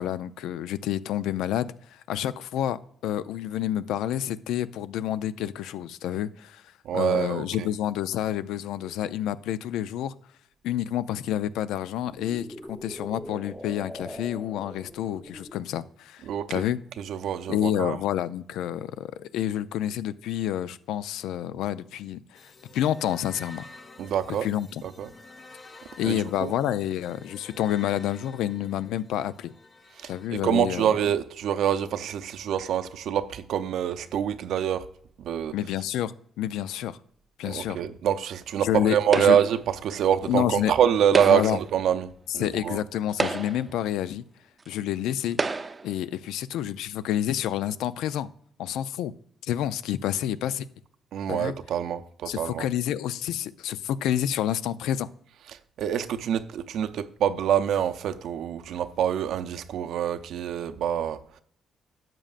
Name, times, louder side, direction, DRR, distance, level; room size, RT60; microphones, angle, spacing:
voice 1, 0.0-6.6 6.9-10.1 10.6-16.2 16.5-16.8 17.5-23.6 24.4-24.8 26.0-29.5 30.1-30.9 35.5-37.0 37.4-37.8 38.6-39.4 40.3-40.7 41.3-41.6 42.4-44.2 44.7-45.4 45.8-48.3 48.6-49.1 49.4-50.7 51.3-51.5 52.3-55.1, left 11 dB, 90° left, 0.4 m, -29 dB
voice 2, 6.8-7.7 16.2-16.6 17.0-18.0 24.0-24.5 24.8-25.1 26.0-26.5 30.0-34.9 35.2-35.5 37.4-42.8 51.1-52.7 55.8-61.4, right 9 dB, 75° right, 0.6 m, -26 dB
sound 1, 8.8-8.9 11.8-15.6, equal, 5° left, 0.9 m, -42 dB
sound 2, 22.3-30.3, left 3 dB, 35° left, 0.7 m, -50 dB
sound 3, 39.1-39.6 41.0-41.7 42.5-42.6 43.1-43.8 44.6-44.7 45.3-45.9, right 4 dB, 30° right, 0.6 m, -29 dB
12.5 x 7.5 x 2.5 m
cardioid pair, 90°, 0 cm